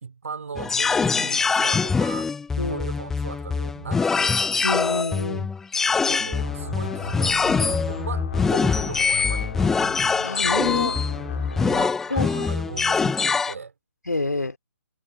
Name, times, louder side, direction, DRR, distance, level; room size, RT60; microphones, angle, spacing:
voice 1, 0.0-4.4 6.1-9.5 11.6-13.7, right 5 dB, 55° right, 4.0 m, -37 dB
sound 1, 0.6-13.5, left 5 dB, 5° left, 0.4 m, -24 dB
voice 2, 2.6-2.9 4.6-5.5 10.2-11.0 12.1-12.5 14.1-14.6, left 2 dB, 75° left, 2.8 m, -27 dB
sound 2, 6.3-11.9, left 6 dB, 50° left, 2.3 m, -36 dB
figure-of-eight pair, 140°, 9 cm